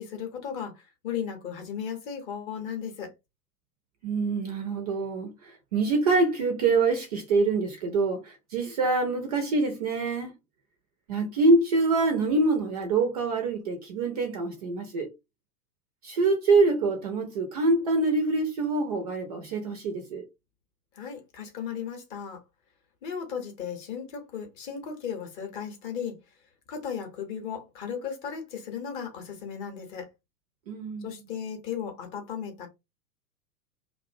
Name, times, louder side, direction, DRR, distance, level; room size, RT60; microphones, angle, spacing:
voice 1, 0.0-3.1 20.9-22.4 23.0-26.2 26.7-30.1 31.0-32.7, left 7 dB, 30° left, 0.7 m, -36 dB
voice 2, 4.0-10.3 11.1-15.1 16.0-20.2 30.7-31.1, right 3 dB, 30° right, 0.4 m, -25 dB
2.5 x 2.1 x 2.5 m
figure-of-eight pair, 95°, 47 cm